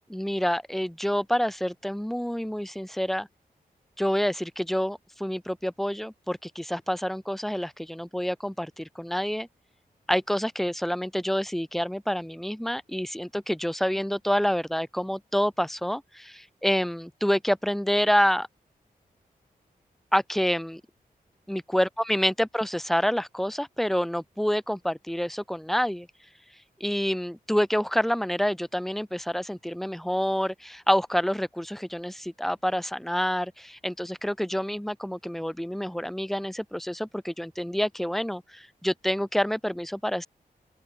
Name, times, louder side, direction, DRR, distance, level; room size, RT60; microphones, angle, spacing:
voice 1, 0.1-3.3 4.0-9.5 10.1-18.5 20.1-20.8 21.5-26.1 26.8-40.3, equal, ahead, 1.7 m, -27 dB
open air
wide cardioid pair, 170°, 16 cm